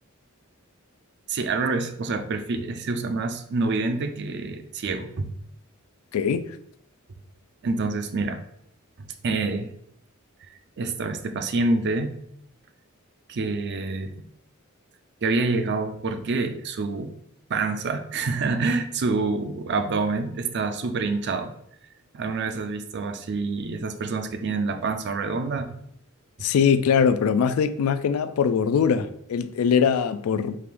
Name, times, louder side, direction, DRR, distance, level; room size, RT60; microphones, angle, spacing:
voice 1, 1.3-5.3 7.6-8.4 9.0-9.7 10.8-12.1 13.3-14.1 15.2-17.1 17.5-21.5 22.1-25.8 26.4-26.5, right 3 dB, 55° right, 0.4 m, -27 dB
voice 2, 6.1-6.6 26.4-30.6, left 7 dB, 80° left, 0.3 m, -22 dB
4.7 x 2.5 x 3.5 m
head